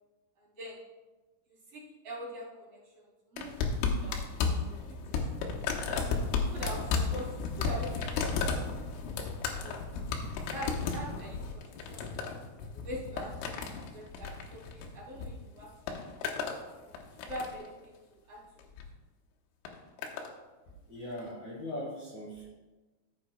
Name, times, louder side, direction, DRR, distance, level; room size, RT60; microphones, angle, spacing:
voice 1, 0.4-0.8 1.7-3.5 4.0-6.0 6.4-7.2 7.6-8.5 8.9-9.0 9.6-9.8 10.5-11.6 11.9-12.3 12.7-13.6 13.9-16.0 16.7-16.9 17.2-18.4, equal, 35° right, -5 dB, 2.8 m, -44 dB
sound 1, 3.4-15.3 15.6-16.6 17.0-17.7 18.6-18.9 19.7-20.3 21.2-21.3, left 5 dB, 85° left, 3.5 m, -33 dB
voice 2, 20.9-22.4, left 1 dB, 65° left, -4 dB, 1.8 m, -40 dB
14.5 x 8.5 x 2.2 m, 1.2 s
omnidirectional pair, 5.7 m